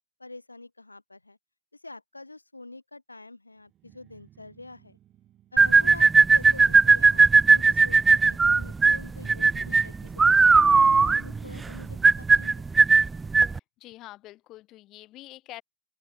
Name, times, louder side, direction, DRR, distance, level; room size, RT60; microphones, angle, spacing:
voice 1, 0.2-1.4 1.7-5.0 5.5-7.2 7.5-12.6, left 2 dB, 85° left, 1.5 m, -46 dB
Guitar, 3.7-7.3 8.8-9.2 9.4-12.4, right 12 dB, 30° right, 4.3 m, -51 dB
sound 1, 5.6-13.6, right 4 dB, 15° right, 0.3 m, -18 dB
voice 2, 13.4-15.6, left 16 dB, 35° left, 5.1 m, -46 dB
open air
figure-of-eight pair, 90°, 0 cm